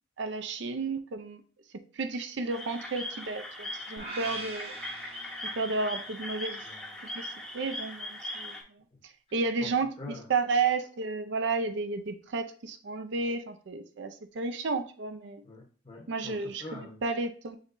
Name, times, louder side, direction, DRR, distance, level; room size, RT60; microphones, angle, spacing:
voice 1, 0.2-1.4 2.0-4.7 5.6-6.6 7.1-8.6 9.3-15.4 16.1-16.6 17.0-17.6, right 4 dB, 60° right, 8 dB, 0.4 m, -32 dB
sound 1, 2.5-8.6, left 1 dB, 5° left, 0.7 m, -39 dB
sound 2, 4.0-6.2, right 2 dB, 30° right, 0.8 m, -43 dB
voice 2, 9.3-9.7 10.0-10.3 15.4-17.0, left 2 dB, 30° left, 1 dB, 0.9 m, -45 dB
6.3 x 3.0 x 2.5 m, 0.41 s
head